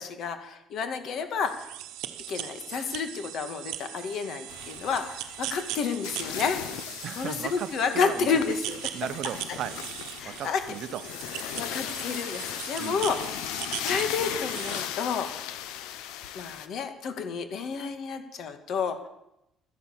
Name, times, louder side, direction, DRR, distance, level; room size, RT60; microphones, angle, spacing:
voice 1, 0.0-1.7 2.3-6.6 7.2-8.8 10.2-10.6 11.6-13.2 13.8-15.3 16.3-19.0, left 5 dB, 55° left, 8 dB, 2.0 m, -30 dB
sound 1, 1.4-14.9, right 13 dB, 85° right, 1.0 m, -39 dB
sound 2, 4.5-16.7, left 11 dB, 90° left, 1.0 m, -37 dB
voice 2, 7.0-8.4 8.9-9.8 10.2-11.1 12.8-13.1, right 10 dB, 55° right, 13 dB, 0.7 m, -36 dB
13.0 x 10.5 x 7.3 m, 0.84 s
cardioid pair, 140°, 0 cm